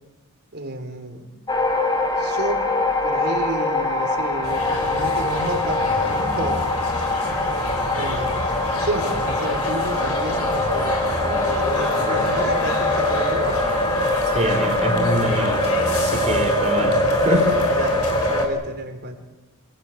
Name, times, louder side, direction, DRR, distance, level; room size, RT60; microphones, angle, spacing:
voice 1, 0.5-1.3 2.2-2.7 3.0-6.7 7.4-13.6 17.7-19.1, right 2 dB, 50° right, 4 dB, 4.1 m, -31 dB
sound 1, 1.5-18.5, left 2 dB, 20° left, 2.9 m, -23 dB
sound 2, 4.4-18.4, left 2 dB, 90° left, 4.6 m, -30 dB
voice 2, 14.3-17.0 17.2-17.5, equal, 30° right, 1 dB, 4.6 m, -25 dB
25.0 x 16.5 x 8.7 m, 1.2 s
head